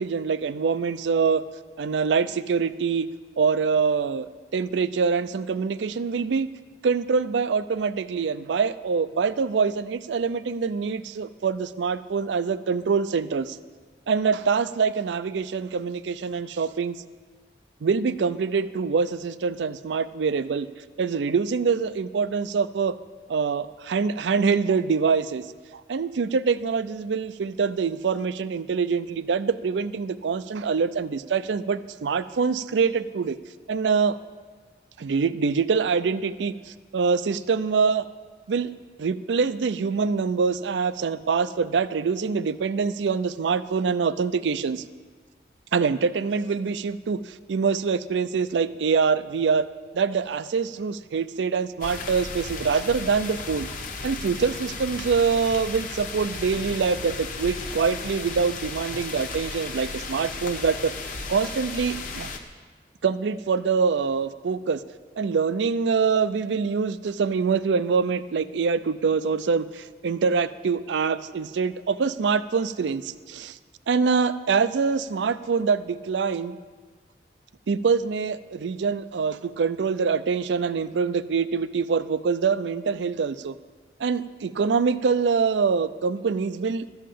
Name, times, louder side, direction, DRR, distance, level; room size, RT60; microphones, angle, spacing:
voice 1, 0.0-1.4 1.8-3.1 3.4-6.5 6.8-13.6 14.1-17.0 17.8-20.7 21.0-22.9 23.3-25.4 25.7-33.4 33.7-34.2 35.0-38.1 38.5-38.7 39.0-44.8 45.7-49.7 49.9-53.7 54.0-60.9 61.3-62.3 63.0-64.8 65.2-73.6 73.9-76.6 77.7-83.5 84.0-86.9, right 5 dB, 85° right, 15 dB, 0.4 m, -25 dB
sound 1, 51.8-62.4, left 3 dB, 50° left, 0.9 m, -35 dB
12.5 x 5.7 x 8.3 m, 1.5 s
head